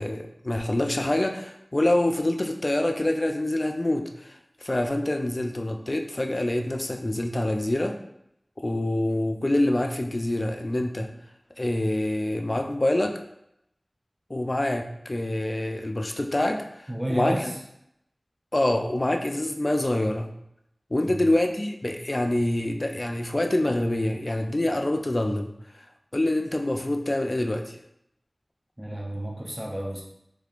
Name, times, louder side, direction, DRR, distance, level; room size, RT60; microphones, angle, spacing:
voice 1, 0.0-8.0 8.6-11.1 11.6-13.2 14.3-17.5 18.5-20.3 20.9-25.5 25.8-25.9 26.1-27.8, left 1 dB, 45° left, 4 dB, 0.4 m, -26 dB
voice 2, 16.9-17.5 21.0-21.3 28.8-30.0, right 1 dB, 20° right, -1 dB, 0.5 m, -31 dB
3.5 x 3.3 x 2.4 m, 0.77 s
wide cardioid pair, 50°, 0 cm